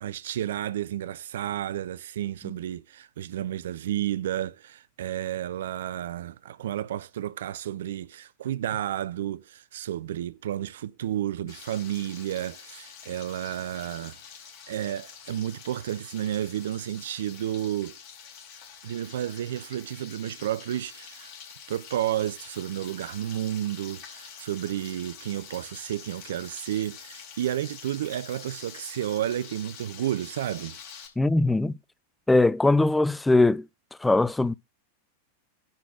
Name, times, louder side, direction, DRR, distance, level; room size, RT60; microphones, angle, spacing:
voice 1, 0.0-14.2 14.7-18.0 18.8-21.3 21.7-30.8, right 11 dB, 60° right, 0.4 m, -31 dB
Frying (food), 11.5-31.1, left 7 dB, 45° left, 4.4 m, -46 dB
voice 2, 31.2-31.7 32.3-33.7 34.0-34.5, left 2 dB, 5° left, 0.4 m, -21 dB
10.5 x 4.1 x 6.1 m
figure-of-eight pair, 90°, 0 cm